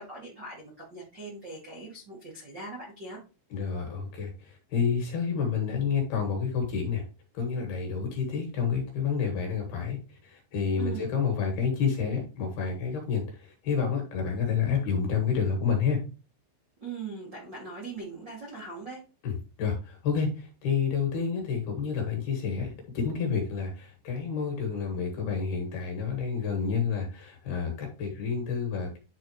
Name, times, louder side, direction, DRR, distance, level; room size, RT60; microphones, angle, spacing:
voice 1, 0.0-3.2 10.8-11.1 16.8-19.0, right 4 dB, 60° right, -4 dB, 1.1 m, -40 dB
voice 2, 3.5-7.0 7.3-16.0 19.2-29.0, left 6 dB, 60° left, 2 dB, 3.2 m, -29 dB
10.5 x 4.2 x 3.1 m, 0.33 s
omnidirectional pair, 5.8 m